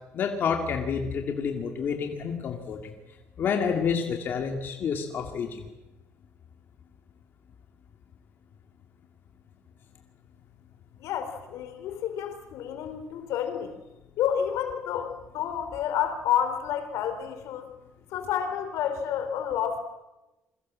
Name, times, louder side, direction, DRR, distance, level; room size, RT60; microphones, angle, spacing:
voice 1, 0.1-2.9 3.4-5.7, left 6 dB, 40° left, 3 dB, 2.4 m, -29 dB
voice 2, 11.0-13.7 14.2-17.7 18.1-19.8, left 9 dB, 75° left, 8 dB, 4.0 m, -29 dB
28.5 x 23.0 x 7.6 m, 1.0 s
cardioid pair, 180°, 5 cm